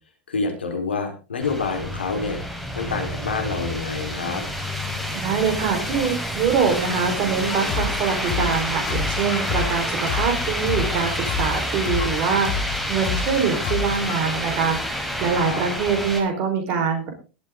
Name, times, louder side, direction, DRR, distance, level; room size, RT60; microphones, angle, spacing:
voice 1, 0.3-2.4 2.8-4.4 15.3-15.6, left 4 dB, 90° left, 4 dB, 4.1 m, -27 dB
sound 1, 1.4-16.2, equal, ahead, 5.1 m, -28 dB
voice 2, 5.1-17.1, right 6 dB, 45° right, 4 dB, 4.5 m, -24 dB
sound 2, 7.4-11.0 11.3-14.2, left 6 dB, 50° left, 2.8 m, -29 dB
22.0 x 8.8 x 3.8 m, 0.35 s
hypercardioid pair, 95°, 6 cm